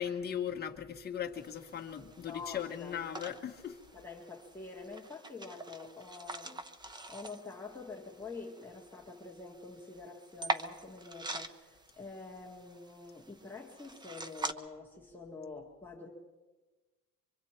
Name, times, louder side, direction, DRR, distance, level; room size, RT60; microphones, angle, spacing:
voice 1, 0.0-3.8, left 9 dB, 30° left, 1.4 m, -38 dB
Jewelry Box and Necklace, 1.3-14.5, right 2 dB, 15° right, 0.6 m, -44 dB
voice 2, 2.2-3.0 3.9-16.1, left 4 dB, 5° left, 1.7 m, -47 dB
25.0 x 24.5 x 4.5 m
cardioid pair, 175°, 33 cm